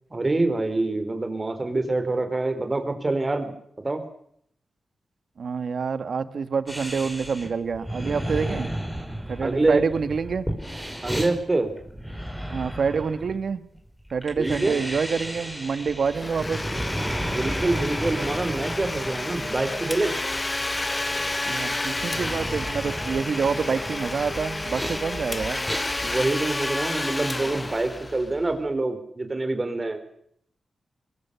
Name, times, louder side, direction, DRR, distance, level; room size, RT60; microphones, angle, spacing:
voice 1, 0.1-4.0 9.4-9.8 11.0-11.7 14.4-14.8 17.2-20.1 26.0-30.0, right 2 dB, 30° right, 7 dB, 4.1 m, -26 dB
voice 2, 5.4-8.7 9.3-10.5 12.5-13.6 14.1-16.6 21.4-25.6, right 5 dB, 70° right, 12 dB, 1.5 m, -27 dB
sound 1, 6.7-26.2, equal, ahead, 5.6 m, -34 dB
Domestic sounds home sounds, 16.1-28.6, left 2 dB, 25° left, 1.1 m, -30 dB
22.5 x 22.0 x 7.0 m, 0.70 s
cardioid pair, 65°, 0 cm